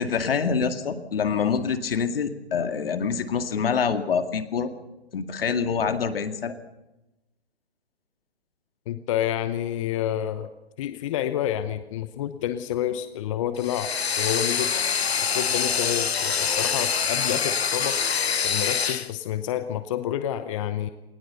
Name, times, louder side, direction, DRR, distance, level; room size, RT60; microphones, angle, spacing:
voice 1, 0.0-4.7 5.1-6.5, left 6 dB, 65° left, 8 dB, 2.2 m, -26 dB
voice 2, 8.9-10.5 10.8-13.9 14.2-14.7 15.3-18.0 18.4-20.9, left 11 dB, 30° left, 11 dB, 0.8 m, -29 dB
sound 1, 13.6-19.1, left 6 dB, 90° left, 1.0 m, -25 dB
20.5 x 19.5 x 6.8 m, 0.98 s
hypercardioid pair, 145°, 31 cm